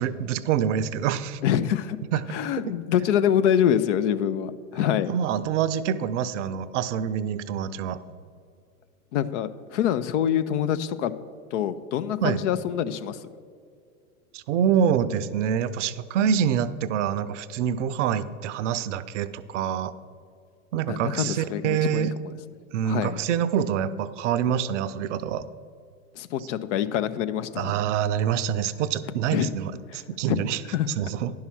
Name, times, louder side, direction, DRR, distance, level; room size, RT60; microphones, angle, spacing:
voice 1, 0.0-1.4 2.1-2.2 5.1-8.0 12.2-12.4 14.3-19.9 20.7-22.1 22.7-25.4 27.6-30.6 31.0-31.3, right 8 dB, 60° right, 14 dB, 0.6 m, -26 dB
voice 2, 1.4-2.0 2.3-5.1 9.1-11.1 11.5-13.2 20.9-22.3 22.8-23.2 26.1-27.8 29.3-29.5 29.9-30.0 30.3-30.4 30.7-30.9, left 10 dB, 55° left, 14 dB, 0.6 m, -25 dB
10.5 x 5.6 x 5.9 m, 2.3 s
hypercardioid pair, 100°, 42 cm